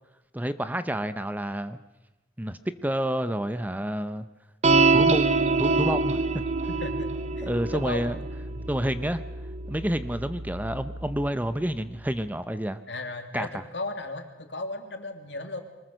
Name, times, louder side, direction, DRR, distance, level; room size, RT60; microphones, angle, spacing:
voice 1, 0.3-1.8 2.4-4.3 4.7-6.4 7.4-8.2 8.7-9.2 9.7-12.8 13.3-13.6, right 1 dB, 10° right, 12 dB, 0.8 m, -29 dB
sound 1, 4.6-11.3, right 4 dB, 40° right, 1.1 m, -26 dB
voice 2, 6.7-7.1 7.4-8.2 8.5-8.7 12.9-15.6, left 2 dB, 80° left, 6 dB, 2.8 m, -36 dB
24.0 x 20.5 x 6.6 m, 1.0 s
head